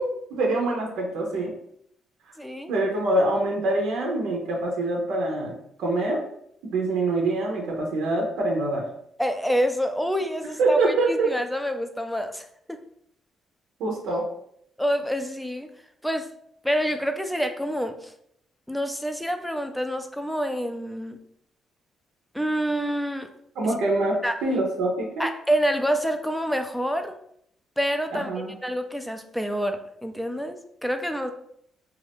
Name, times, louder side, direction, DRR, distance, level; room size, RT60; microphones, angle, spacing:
voice 1, 0.0-1.5 2.7-5.5 5.8-6.2 6.7-8.8 10.6-11.3 13.8-14.2 23.6-25.2 28.1-28.5, right 2 dB, 85° right, 0 dB, 0.7 m, -25 dB
voice 2, 2.4-2.7 9.2-12.8 14.8-15.7 16.0-16.3 16.6-18.1 18.7-21.2 22.3-23.3 24.2-24.4 25.2-27.2 27.8-28.3 28.6-31.3, equal, ahead, 6 dB, 0.4 m, -27 dB
2.5 x 2.4 x 3.4 m, 0.70 s
cardioid pair, 90°, 0 cm